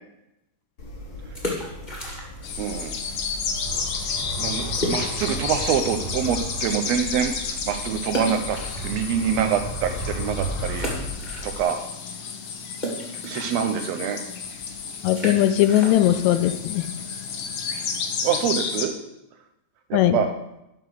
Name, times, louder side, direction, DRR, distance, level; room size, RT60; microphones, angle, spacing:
sound 1, 0.8-11.6, equal, 45° left, 2.0 m, -35 dB
sound 2, 1.2-2.6 2.8-2.9 3.5-3.7 3.9-4.0 4.7-5.7 6.1-6.2 8.1-9.4 9.9-10.0 10.7-11.9 12.2-17.7, equal, 20° left, 1.4 m, -34 dB
sound 3, 2.4-18.9, left 5 dB, 60° left, 1.5 m, -32 dB
voice 1, 2.6-3.0 4.4-10.9 11.4-11.8 13.3-14.2 18.2-18.9 19.9-20.4, right 8 dB, 80° right, 7 dB, 1.6 m, -25 dB
voice 2, 15.0-16.9 19.9-20.2, left 12 dB, 80° left, 10 dB, 1.8 m, -19 dB
11.0 x 4.7 x 6.3 m, 0.88 s
omnidirectional pair, 3.4 m